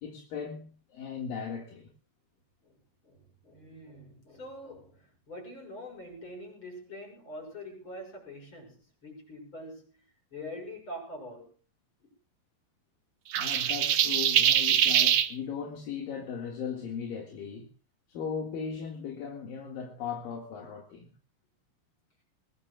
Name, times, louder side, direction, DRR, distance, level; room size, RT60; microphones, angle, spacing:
voice 1, 0.0-1.9 13.4-17.7 18.1-21.1, left 6 dB, 65° left, 3.5 m, -37 dB
voice 2, 3.0-10.0 10.3-11.5 12.0-12.1, left 1 dB, 30° left, 7.1 m, -44 dB
sound 1, 13.3-15.3, right 10 dB, 75° right, 1.6 m, -23 dB
22.0 x 21.0 x 2.4 m
omnidirectional pair, 4.5 m